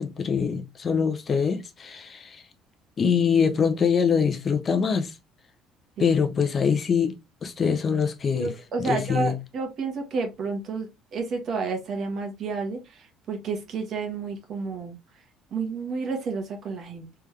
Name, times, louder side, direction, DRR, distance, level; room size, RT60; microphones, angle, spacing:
voice 1, 0.0-2.4 3.0-5.2 6.0-8.5 8.8-9.4, left 6 dB, 35° left, 0.7 m, -24 dB
voice 2, 8.4-15.0 15.5-17.2, right 4 dB, 55° right, 1.4 m, -31 dB
3.5 x 3.3 x 3.2 m
cardioid pair, 110°, 0 cm